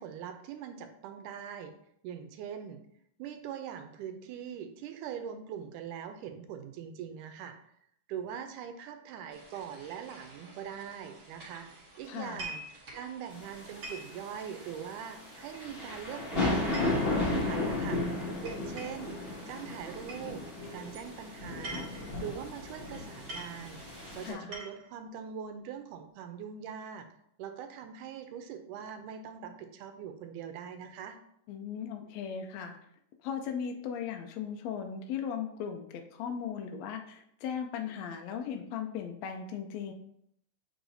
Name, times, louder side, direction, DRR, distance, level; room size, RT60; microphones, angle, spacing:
voice 1, 0.0-1.7 2.0-2.8 3.2-7.6 8.1-11.7 12.0-12.6 12.9-19.2 19.5-20.4 20.7-21.9 22.2-23.8 24.1-27.1 27.4-31.2, right 8 dB, 80° right, 7 dB, 2.1 m, -42 dB
sound 1, 9.3-24.3, right 2 dB, 35° right, 1.7 m, -55 dB
voice 2, 12.0-12.4 24.2-24.5 31.5-32.8 33.2-39.9, left 7 dB, 80° left, 5 dB, 1.5 m, -37 dB
sound 2, 12.2-12.7 13.8-14.1 15.5-15.9 16.4-17.6 18.4-19.1 20.1-20.3 21.4-22.1 22.9-23.0 23.3-23.6 24.3-24.9, right 2 dB, 55° right, 2.4 m, -43 dB
sound 3, 13.4-24.3, left 2 dB, 25° left, 1.5 m, -34 dB
7.8 x 4.8 x 2.7 m, 0.71 s
omnidirectional pair, 3.7 m